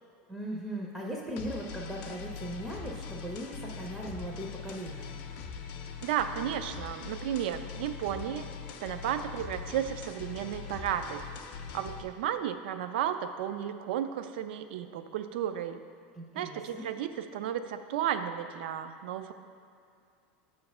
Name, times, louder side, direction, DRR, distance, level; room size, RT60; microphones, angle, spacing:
voice 1, 0.3-5.2 16.2-16.9, right 1 dB, 10° right, -3 dB, 0.5 m, -38 dB
sound 1, 1.4-12.0, left 6 dB, 45° left, 0.5 m, -42 dB
voice 2, 6.0-8.5 8.8-11.3 11.7-15.8 16.3-19.3, right 10 dB, 80° right, 10 dB, 0.4 m, -33 dB
7.7 x 3.2 x 6.0 m, 2.4 s
supercardioid pair, 170°, 5 cm